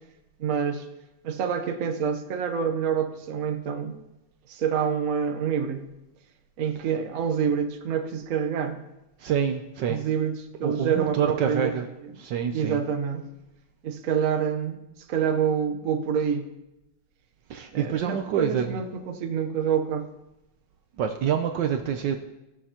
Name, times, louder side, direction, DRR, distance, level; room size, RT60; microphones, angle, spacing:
voice 1, 0.4-0.9 1.2-4.0 4.5-5.8 6.6-8.8 9.9-11.7 12.0-12.2 12.5-13.2 13.8-14.8 15.1-16.5 17.7-20.1, right 7 dB, 55° right, 5 dB, 1.1 m, -27 dB
voice 2, 9.2-10.0 10.6-11.9 12.2-12.8 17.5-18.7 21.0-22.2, right 8 dB, 70° right, 6 dB, 1.2 m, -27 dB
18.5 x 7.1 x 2.9 m, 0.96 s
omnidirectional pair, 2.2 m